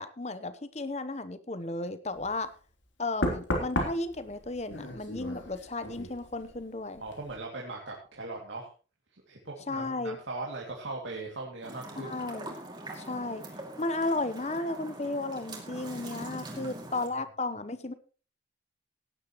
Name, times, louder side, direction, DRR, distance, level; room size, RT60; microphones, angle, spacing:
voice 1, 0.0-2.5 3.0-7.0 9.7-10.2 12.0-12.6 12.9-13.4 13.8-17.9, left 2 dB, 35° left, 13 dB, 0.9 m, -34 dB
Knock, 2.2-2.4 3.2-6.7 7.0-7.3, left 1 dB, 85° left, 3.2 m, -34 dB
voice 2, 7.0-8.7 9.1-12.2 16.4-16.8, right 2 dB, 80° right, -2 dB, 2.6 m, -40 dB
sound 1, 11.6-17.1, right 2 dB, 25° right, 2.5 m, -43 dB
17.0 x 10.5 x 3.1 m, 0.36 s
head